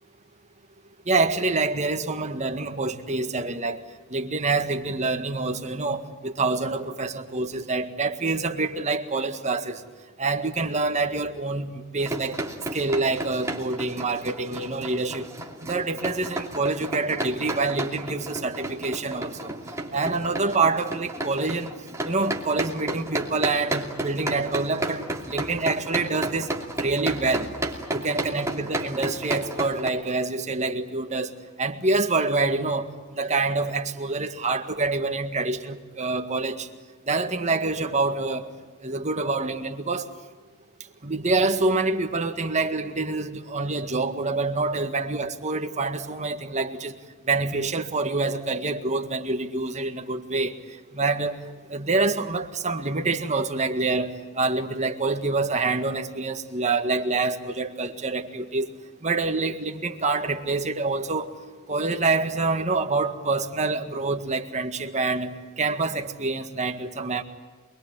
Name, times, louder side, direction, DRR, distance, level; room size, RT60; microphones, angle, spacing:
voice 1, 1.1-3.8 4.1-9.8 10.2-12.4 12.7-15.3 15.6-19.6 19.9-21.7 22.1-26.5 26.8-27.5 27.9-31.3 31.6-32.9 33.1-36.7 37.1-38.5 38.8-40.0 41.0-46.9 47.3-50.5 50.9-51.4 51.7-58.7 59.0-61.3 61.7-67.2, right 3 dB, 30° right, 1.9 m, -26 dB
sound 1, 12.0-29.9, right 1 dB, 15° right, 2.8 m, -32 dB
27.5 x 21.5 x 9.1 m
head